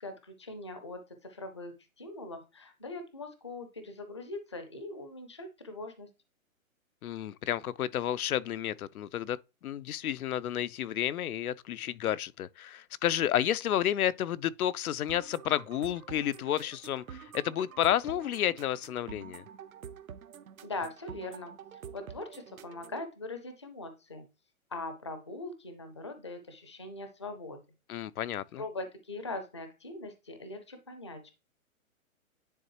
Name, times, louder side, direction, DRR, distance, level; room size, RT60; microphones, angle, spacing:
voice 1, 0.0-6.1 20.6-21.5 21.9-24.2 24.7-27.6 28.5-31.3, left 2 dB, 20° left, 0.5 m, -41 dB
voice 2, 7.0-9.4 9.6-19.4 27.9-28.6, left 11 dB, 85° left, 0.6 m, -31 dB
sound 1, 15.1-23.1, right 8 dB, 75° right, 1.1 m, -48 dB
9.7 x 3.9 x 3.0 m
hypercardioid pair, 175°, 42 cm